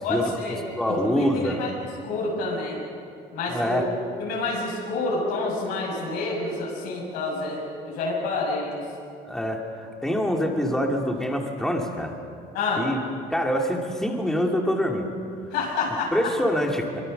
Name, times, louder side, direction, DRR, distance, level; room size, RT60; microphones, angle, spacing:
voice 1, 0.0-1.0 1.3-2.8 3.3-3.8 4.2-8.8 12.5-12.9 15.5-16.3, left 3 dB, 80° left, -3 dB, 6.5 m, -28 dB
voice 2, 0.7-1.6 3.5-3.8 9.3-12.1 12.8-13.0 13.3-15.1 16.1-16.9, equal, 5° left, 1 dB, 2.6 m, -25 dB
24.5 x 24.0 x 6.7 m, 2.5 s
cardioid pair, 150°, 17 cm